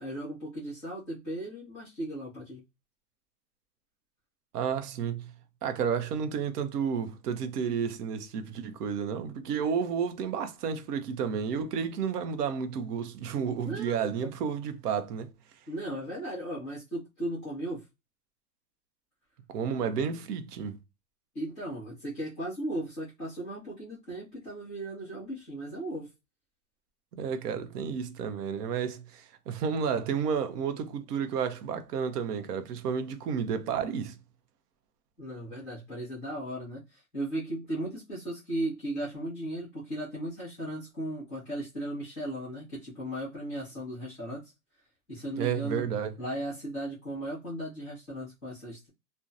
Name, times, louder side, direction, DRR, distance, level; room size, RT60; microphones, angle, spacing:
voice 1, 0.0-2.6 13.6-14.3 15.7-17.8 21.3-26.1 35.2-44.5 45.1-45.8 46.2-48.9, right 1 dB, ahead, 0.4 m, -36 dB
voice 2, 4.5-5.3 5.6-15.3 19.5-20.8 27.2-34.2 45.4-46.1, right 7 dB, 70° right, 0.7 m, -31 dB
2.7 x 2.1 x 2.4 m
supercardioid pair, 160°, 50 cm